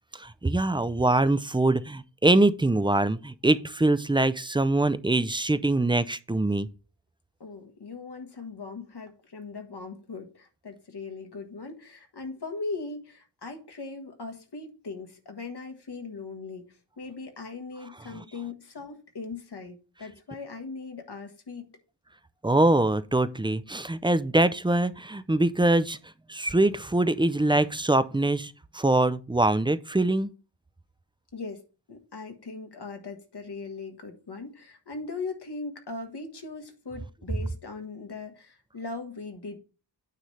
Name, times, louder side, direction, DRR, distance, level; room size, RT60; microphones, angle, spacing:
voice 1, 0.1-6.7 18.2-18.3 22.4-26.0 26.3-30.3, right 2 dB, 10° right, 0.4 m, -23 dB
voice 2, 7.4-21.7 31.3-31.6 31.9-39.6, left 3 dB, 65° left, 1.4 m, -39 dB
9.2 x 3.2 x 5.5 m
wide cardioid pair, 75°, 43 cm